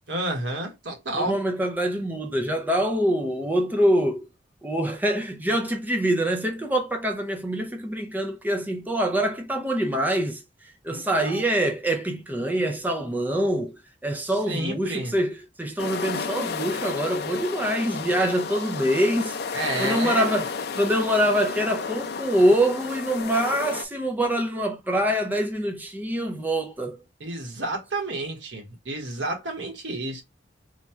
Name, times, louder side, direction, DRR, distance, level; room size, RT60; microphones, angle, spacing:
voice 1, 0.1-1.4 10.9-11.5 14.2-15.1 19.5-20.4 27.2-30.2, right 2 dB, 80° right, 1.3 m, -31 dB
voice 2, 1.1-4.3 4.6-10.4 10.8-19.4 19.8-20.5 20.8-27.0, right 1 dB, 10° right, 0.4 m, -25 dB
sound 1, 15.8-23.8, left 5 dB, 60° left, 0.5 m, -32 dB
3.1 x 2.3 x 4.3 m
head